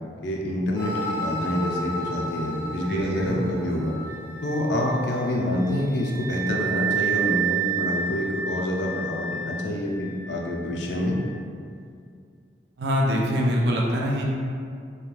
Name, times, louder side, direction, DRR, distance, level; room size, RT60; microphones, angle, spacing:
voice 1, 0.2-4.0 4.4-11.2, left 1 dB, 80° left, -1 dB, 0.4 m, -27 dB
sound 1, 0.7-4.7, left 1 dB, 25° left, 0.7 m, -33 dB
voice 2, 2.9-3.4 12.8-14.2, equal, 70° right, -1 dB, 0.4 m, -24 dB
Wind instrument woodwind instrument, 3.8-11.3, right 7 dB, 10° right, 1.1 m, -31 dB
2.3 x 2.2 x 3.0 m, 2.3 s
head